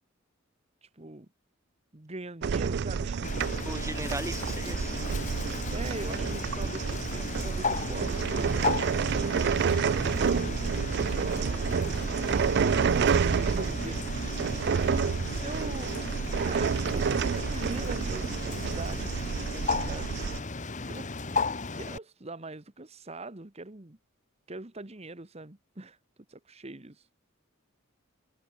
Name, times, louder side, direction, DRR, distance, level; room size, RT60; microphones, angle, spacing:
voice 1, 0.8-1.3 1.9-3.3 5.4-8.9 9.6-11.7 13.0-14.5 15.2-15.9 16.3-20.2 20.9-24.0 24.5-26.0 26.3-27.1, right 2 dB, 30° right, 1.3 m, -43 dB
sound 1, 2.4-20.4, right 6 dB, 55° right, 0.4 m, -29 dB
Bird, 3.2-22.0, left 4 dB, 35° left, 1.3 m, -35 dB
voice 2, 3.7-4.9, right 2 dB, 15° right, 1.7 m, -37 dB
head